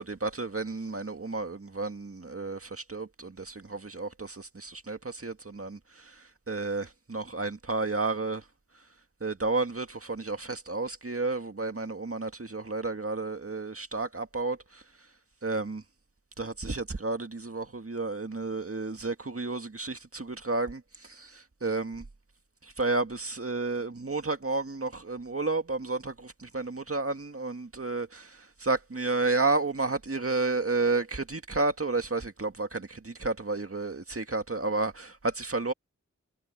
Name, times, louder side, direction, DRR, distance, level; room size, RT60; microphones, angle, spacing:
voice 1, 0.0-5.8 6.5-8.4 9.2-14.6 15.4-15.8 16.4-20.8 21.1-22.0 22.8-28.3 28.6-35.7, right 3 dB, 50° right, 2.0 m, -31 dB
wide cardioid pair, 45°, 30 cm